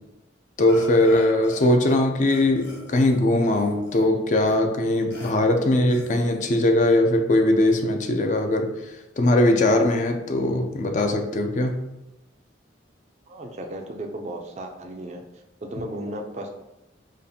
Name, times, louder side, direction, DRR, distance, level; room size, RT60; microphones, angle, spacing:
voice 1, 0.6-11.8, left 1 dB, 40° left, 4 dB, 0.4 m, -20 dB
Burping eructation, 0.7-2.0 2.2-4.1 4.5-4.6 5.1-5.3 5.9-6.4, left 2 dB, 75° left, 1.3 m, -42 dB
voice 2, 13.3-15.2 15.7-16.5, right 1 dB, 35° right, 3 dB, 0.4 m, -34 dB
5.0 x 2.4 x 2.7 m, 0.97 s
head